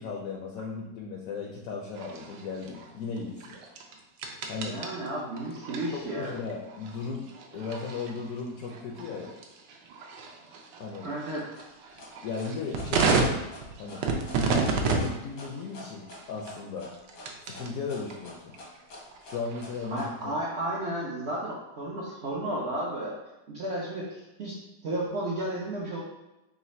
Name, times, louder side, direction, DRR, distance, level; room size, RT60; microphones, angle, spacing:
voice 1, 0.0-3.6 4.5-4.7 5.9-9.3 10.8-11.1 12.2-13.3 13.8-14.0 14.4-16.9 17.4-18.5 19.2-20.3, left 4 dB, 70° left, -1 dB, 0.8 m, -36 dB
sound 1, 1.9-17.7 18.1-20.2, right 4 dB, 90° right, 1.3 m, -33 dB
voice 2, 4.6-6.3 11.0-11.5 13.9-14.1 19.9-23.2 23.5-24.6 24.8-26.0, right 1 dB, 65° right, -5 dB, 0.6 m, -33 dB
sound 2, 11.5-20.1, left 1 dB, 85° left, 1.6 m, -46 dB
4.1 x 2.4 x 4.1 m, 1.0 s
omnidirectional pair, 1.8 m